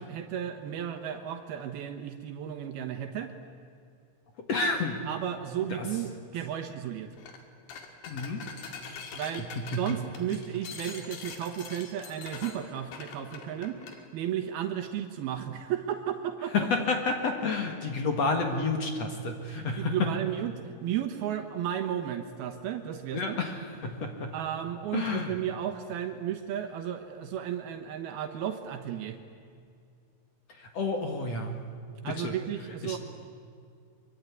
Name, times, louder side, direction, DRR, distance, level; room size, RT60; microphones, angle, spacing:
voice 1, 0.0-3.3 5.1-7.1 9.1-13.8 14.1-16.7 19.5-23.4 24.3-29.2 32.0-33.0, right 10 dB, 80° right, 6 dB, 3.1 m, -34 dB
voice 2, 4.5-5.0 5.8-5.9 8.1-8.5 9.7-9.8 16.5-20.1 23.1-24.3 24.9-25.3 30.6-31.6 32.1-32.3 32.8-33.0, left 3 dB, 50° left, 4 dB, 2.5 m, -30 dB
sound 1, 7.2-7.4 7.7-14.0, left 6 dB, 80° left, 4.3 m, -43 dB
24.5 x 24.0 x 9.6 m, 2.4 s
omnidirectional pair, 4.4 m